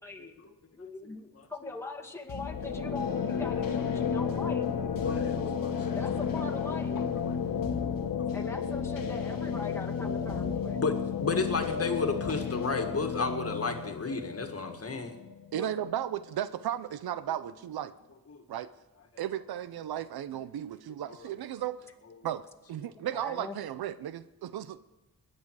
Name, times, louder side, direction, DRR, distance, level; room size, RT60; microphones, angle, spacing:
voice 1, 0.0-4.7 5.9-7.0 8.3-10.8 15.5-15.7 22.9-23.6, left 3 dB, 5° left, -1 dB, 2.1 m, -41 dB
voice 2, 1.0-1.5 4.0-4.1 5.0-6.0 6.3-6.6 6.9-7.4 8.3-8.4 10.8-10.9 11.2-15.2 18.3-18.4 21.1-21.3, left 4 dB, 40° left, 5 dB, 2.0 m, -33 dB
sound 1, 2.3-16.0, left 6 dB, 65° left, 1.3 m, -32 dB
voice 3, 15.5-17.9 18.5-18.7 19.2-21.8 22.2-24.8, right 11 dB, 85° right, 14 dB, 0.6 m, -35 dB
21.0 x 10.0 x 4.8 m, 1.1 s
cardioid pair, 85°, 36 cm